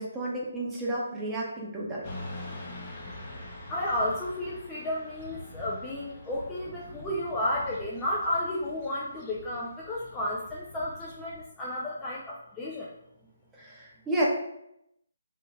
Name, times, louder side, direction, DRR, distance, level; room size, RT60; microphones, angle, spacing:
voice 1, 0.0-2.0 13.6-14.3, right 1 dB, 10° right, -5 dB, 0.9 m, -31 dB
Motorcycle / Traffic noise roadway noise, 2.0-11.4, left 1 dB, 30° left, 0.9 m, -44 dB
voice 2, 3.7-12.9, left 1 dB, 10° left, -7 dB, 0.4 m, -32 dB
3.3 x 2.9 x 3.5 m, 0.80 s
figure-of-eight pair, 145°, 0 cm